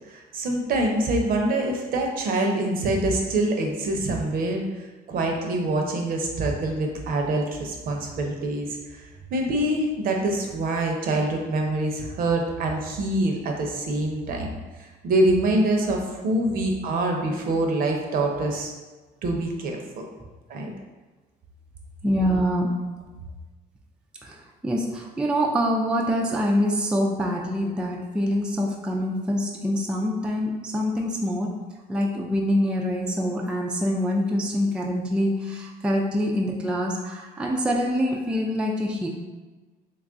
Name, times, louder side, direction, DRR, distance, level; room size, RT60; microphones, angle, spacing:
voice 1, 0.1-4.6 5.1-9.1 9.3-14.5 14.8-18.7 19.2-20.1 20.5-20.7, right 2 dB, 60° right, 2 dB, 0.6 m, -25 dB
voice 2, 22.0-22.7 24.2-31.5 31.9-39.1, equal, 5° right, -1 dB, 0.4 m, -25 dB
3.1 x 2.3 x 3.8 m, 1.3 s
cardioid pair, 110°, 17 cm